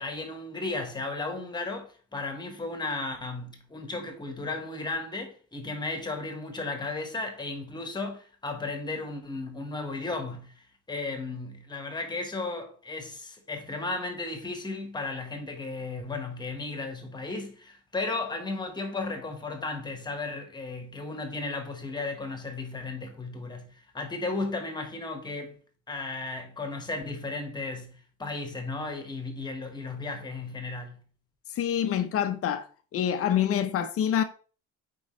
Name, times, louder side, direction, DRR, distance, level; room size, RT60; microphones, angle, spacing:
voice 1, 0.0-25.5 25.9-31.0, left 3 dB, 15° left, 1.3 m, -35 dB
voice 2, 31.5-32.7 32.9-34.2, left 9 dB, 45° left, 0.8 m, -26 dB
8.1 x 4.8 x 3.2 m
cardioid pair, 155°, 32 cm